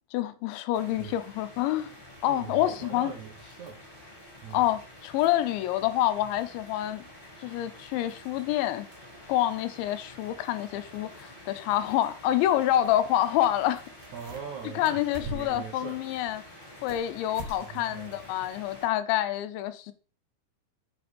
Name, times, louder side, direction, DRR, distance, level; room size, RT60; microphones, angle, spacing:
voice 1, 0.0-1.9 2.2-3.1 4.5-7.0 7.4-8.9 9.3-13.8 14.8-16.4 16.8-19.9, left 13 dB, 85° left, 3.1 m, -27 dB
sound 1, 0.7-18.9, left 1 dB, 15° left, 2.1 m, -49 dB
voice 2, 0.8-1.2 2.3-3.8 4.4-4.6 14.1-16.0 17.6-18.2, right 7 dB, 85° right, 1.6 m, -42 dB
sound 2, 13.4-13.5 13.7-14.6 14.8-15.7 16.1-17.0 17.3-17.6 17.9-18.0 18.5-18.6, right 1 dB, 50° right, 2.5 m, -41 dB
7.9 x 5.9 x 5.2 m
omnidirectional pair, 5.3 m